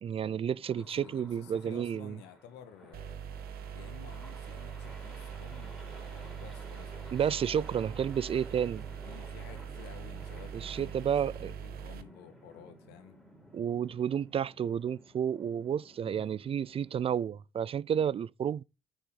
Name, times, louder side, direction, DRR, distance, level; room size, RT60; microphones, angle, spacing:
voice 1, 0.0-2.2 7.1-8.9 10.5-11.5 13.5-18.6, right 8 dB, 35° right, 0.3 m, -31 dB
voice 2, 0.7-3.2 3.7-7.5 9.0-13.2 16.0-16.3, left 9 dB, 85° left, 1.7 m, -52 dB
sound 1, 0.7-17.3, equal, ahead, 4.0 m, -54 dB
sound 2, 2.9-12.0, right 8 dB, 65° right, 0.9 m, -42 dB
9.2 x 7.0 x 3.7 m
cardioid pair, 110°, 17 cm